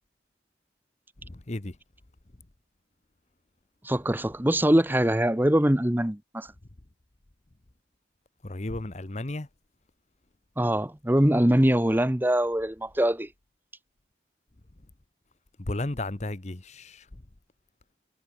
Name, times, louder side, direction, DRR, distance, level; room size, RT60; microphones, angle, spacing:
voice 1, 1.2-1.8 8.4-9.5 15.7-17.0, left 2 dB, 35° left, 1.0 m, -33 dB
voice 2, 3.8-6.5 10.6-13.3, right 1 dB, 10° right, 0.9 m, -23 dB
head